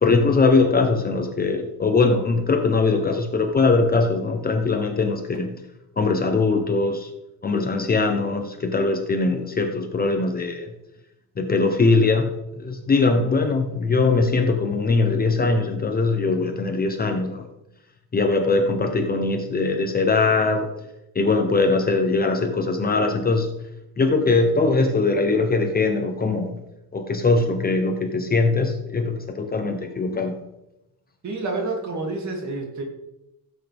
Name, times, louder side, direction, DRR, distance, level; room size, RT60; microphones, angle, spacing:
voice 1, 0.0-5.6 6.0-7.1 7.4-10.7 11.4-12.3 12.6-17.5 18.1-20.7 21.1-23.5 24.0-26.6 26.9-30.4, left 3 dB, 25° left, 4 dB, 0.8 m, -21 dB
voice 2, 31.2-32.8, right 3 dB, 45° right, 1 dB, 2.5 m, -28 dB
15.5 x 8.4 x 3.5 m, 0.91 s
cardioid pair, 175°, 38 cm